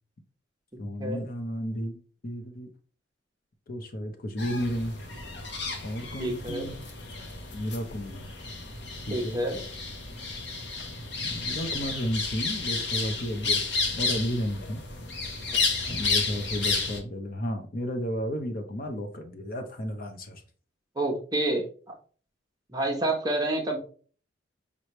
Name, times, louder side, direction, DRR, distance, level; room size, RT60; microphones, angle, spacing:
voice 1, 0.8-2.7 3.7-4.9 5.8-6.8 7.5-8.3 9.1-9.4 11.2-14.8 15.9-20.4, equal, 50° left, 6 dB, 0.7 m, -33 dB
sound 1, 4.4-17.0, left 4 dB, 65° left, 1.0 m, -32 dB
voice 2, 6.2-6.7 9.1-9.6 15.8-16.0 21.0-21.6 22.7-23.8, right 1 dB, 20° right, 1 dB, 1.0 m, -28 dB
5.4 x 3.2 x 3.0 m, 0.41 s
head